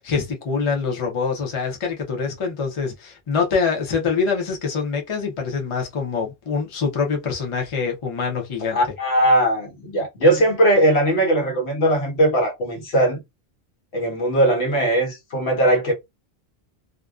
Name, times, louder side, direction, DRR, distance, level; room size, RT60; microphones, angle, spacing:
voice 1, 0.0-8.8, left 5 dB, 35° left, 0.6 m, -25 dB
voice 2, 8.7-13.2 13.9-15.9, right 1 dB, 85° left, 1.2 m, -19 dB
2.5 x 2.1 x 2.3 m
omnidirectional pair, 1.1 m